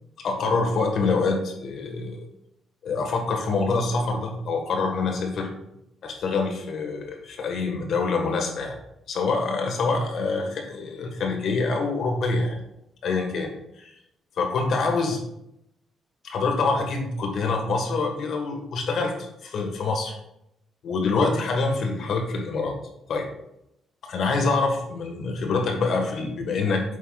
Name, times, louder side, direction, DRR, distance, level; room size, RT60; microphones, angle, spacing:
voice 1, 0.2-2.2 2.8-5.5 6.0-8.8 9.1-12.6 13.0-13.5 13.8-13.9 14.4-15.2 16.2-20.1 20.8-22.8 23.1-23.2 24.0-26.8, left 3 dB, 65° left, 2 dB, 1.5 m, -25 dB
8.1 x 5.7 x 2.4 m, 0.80 s
cardioid pair, 90°, 0 cm